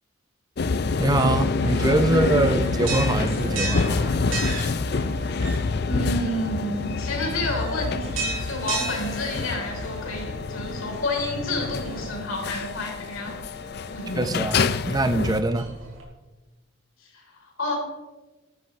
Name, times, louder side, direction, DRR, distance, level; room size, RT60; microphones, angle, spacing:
sound 1, 0.6-15.4, left 4 dB, 50° left, 0.5 m, -27 dB
voice 1, 1.0-4.1 14.1-14.6 14.9-15.7, right 2 dB, 20° right, 9 dB, 0.6 m, -23 dB
sound 2, 1.6-16.0, right 3 dB, 75° right, 3.9 m, -36 dB
voice 2, 5.9-13.4 13.9-14.2 17.0-17.8, left 1 dB, 80° left, 0 dB, 3.7 m, -30 dB
14.5 x 13.0 x 3.2 m, 1.2 s
head